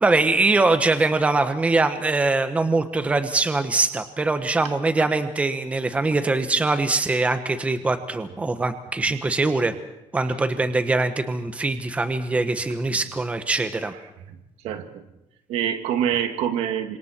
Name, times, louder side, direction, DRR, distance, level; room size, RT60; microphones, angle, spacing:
voice 1, 0.0-9.7 10.1-13.9, right 3 dB, 10° right, 9 dB, 1.2 m, -22 dB
voice 2, 14.6-15.1 15.5-17.0, right 9 dB, 75° right, 7 dB, 2.3 m, -26 dB
28.5 x 26.0 x 4.5 m, 0.89 s
cardioid pair, 165°, 11 cm